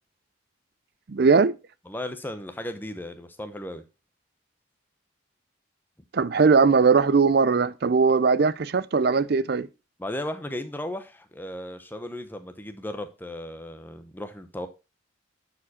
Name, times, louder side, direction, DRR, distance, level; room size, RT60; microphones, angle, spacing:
voice 1, 1.1-1.6 6.1-9.7, right 5 dB, 50° right, 0.5 m, -20 dB
voice 2, 1.9-3.8 10.0-14.7, left 1 dB, 10° left, 0.9 m, -35 dB
11.0 x 4.8 x 4.2 m
head